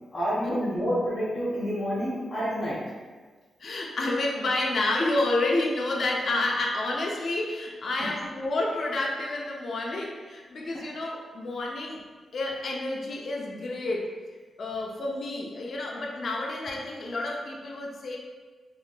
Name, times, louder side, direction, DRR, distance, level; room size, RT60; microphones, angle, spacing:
voice 1, 0.1-2.8, equal, 30° left, -11 dB, 1.1 m, -28 dB
voice 2, 3.6-12.0 12.3-14.1 14.6-18.2, left 2 dB, 60° left, -1 dB, 0.5 m, -29 dB
3.5 x 2.8 x 2.3 m, 1.4 s
cardioid pair, 90°, 0 cm